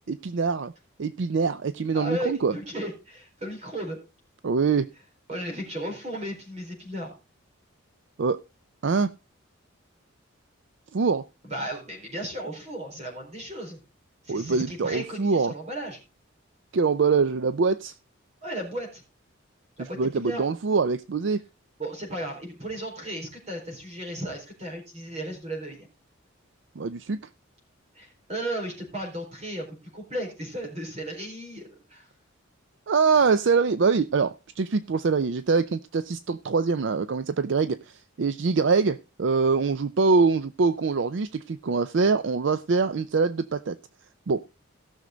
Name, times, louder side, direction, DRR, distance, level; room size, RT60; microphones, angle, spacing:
voice 1, 0.1-0.7 1.0-2.5 4.4-4.9 8.2-8.4 8.8-9.1 10.9-11.2 14.3-15.5 16.7-17.9 19.8-21.4 26.8-27.2 32.9-43.8 44.3-44.4, right 4 dB, 60° right, 14 dB, 0.4 m, -24 dB
voice 2, 1.9-4.0 5.3-7.2 11.4-13.8 14.2-16.0 18.4-19.0 19.8-20.4 21.8-25.9 27.9-32.1, right 1 dB, 30° right, 2 dB, 4.3 m, -35 dB
16.5 x 6.4 x 3.8 m, 0.29 s
head